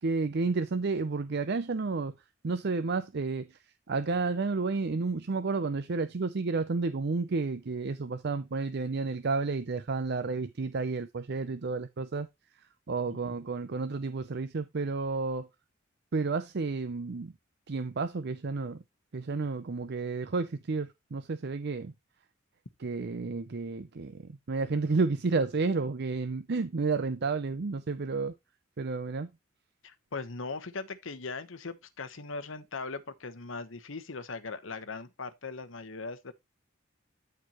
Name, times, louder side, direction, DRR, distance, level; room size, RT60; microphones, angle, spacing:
voice 1, 0.0-2.1 2.4-3.6 3.9-12.3 12.9-15.5 16.1-17.3 17.7-18.8 19.1-21.9 22.8-28.3 28.8-29.3, right 4 dB, 60° right, 0.6 m, -31 dB
voice 2, 29.8-36.3, left 4 dB, 85° left, 1.1 m, -39 dB
13.0 x 4.5 x 3.0 m
head